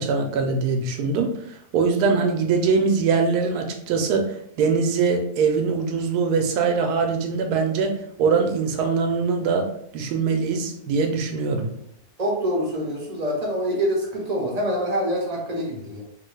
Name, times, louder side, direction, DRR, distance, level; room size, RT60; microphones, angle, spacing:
voice 1, 0.0-1.3 1.7-9.7 9.9-11.7, right 5 dB, 80° right, 4 dB, 1.1 m, -22 dB
voice 2, 12.2-16.0, equal, 45° right, -2 dB, 0.5 m, -25 dB
3.3 x 2.2 x 3.2 m, 0.72 s
omnidirectional pair, 1.6 m